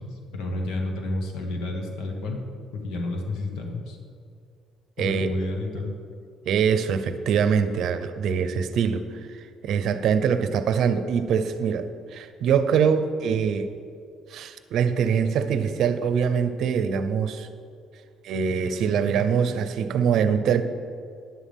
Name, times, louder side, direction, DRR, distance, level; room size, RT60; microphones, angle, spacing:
voice 1, 0.0-2.5 2.7-4.0 5.0-5.9, left 2 dB, 85° left, 2 dB, 1.5 m, -30 dB
voice 2, 5.0-5.3 6.5-9.1 9.6-13.7 14.3-17.5 18.2-20.6, right 7 dB, 60° right, 10 dB, 0.7 m, -23 dB
11.5 x 10.5 x 3.6 m, 2.4 s
cardioid pair, 135°, 0 cm